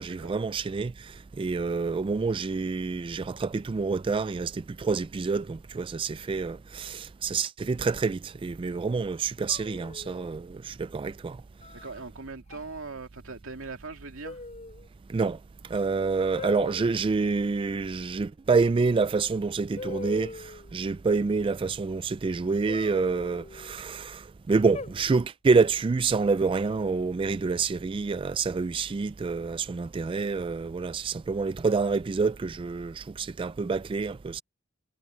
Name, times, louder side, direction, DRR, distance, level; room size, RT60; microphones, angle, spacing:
voice 1, 0.0-11.4 15.1-15.4 15.7-34.4, right 4 dB, 25° right, 0.3 m, -27 dB
sound 1, 9.5-10.4 11.6-12.0 12.5-12.8 14.2-14.9 16.4-17.0 18.9-19.0 19.8-20.7 22.7-23.8 24.7-25.4 26.6-27.2, left 2 dB, 35° left, 4.2 m, -41 dB
voice 2, 11.7-14.4 16.8-16.9, right 3 dB, 75° right, 2.6 m, -41 dB
head